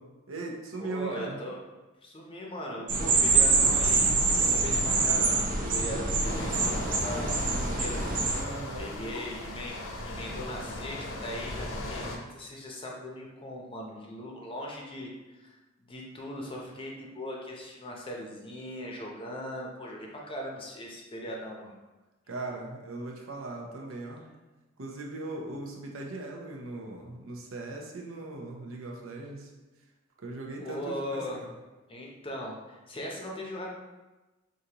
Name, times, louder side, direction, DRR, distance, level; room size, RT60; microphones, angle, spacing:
voice 1, 0.3-1.4 8.3-9.1 22.3-24.2 24.8-29.5 30.2-31.5, right 2 dB, 85° right, 0 dB, 0.7 m, -39 dB
voice 2, 0.8-1.6 2.0-8.0 8.8-21.7 30.6-31.4 31.9-33.7, equal, 25° left, -1 dB, 0.6 m, -39 dB
sound 1, 2.9-8.4, right 3 dB, 40° right, 0.5 m, -25 dB
sound 2, 6.2-12.2, left 1 dB, 70° left, 0.6 m, -38 dB
4.9 x 2.6 x 2.8 m, 1.1 s
head